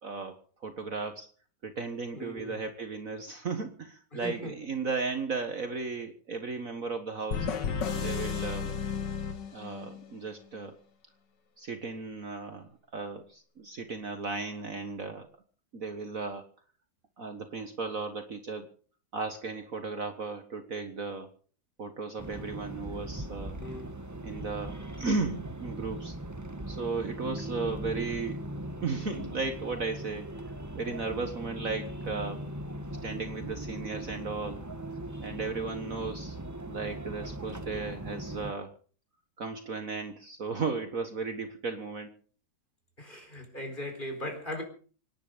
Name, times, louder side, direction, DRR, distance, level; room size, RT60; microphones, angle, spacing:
voice 1, 0.0-1.3 1.6-7.5 7.9-8.7 9.5-10.8 11.6-15.3 15.7-16.5 17.2-18.7 19.1-21.3 21.8-23.6 24.2-26.1 26.7-28.4 28.8-30.3 30.7-32.5 32.9-34.6 35.2-36.4 36.7-38.7 39.4-42.1, right 4 dB, 50° right, 7 dB, 1.7 m, -35 dB
voice 2, 2.1-2.5 4.1-4.5 23.6-23.9 43.0-44.6, left 1 dB, 25° left, 4 dB, 4.4 m, -39 dB
sound 1, 7.3-10.1, left 6 dB, 70° left, 2.1 m, -33 dB
sound 2, 22.2-38.5, right 1 dB, 15° right, 0.7 m, -39 dB
26.0 x 10.5 x 5.1 m, 0.42 s
omnidirectional pair, 2.0 m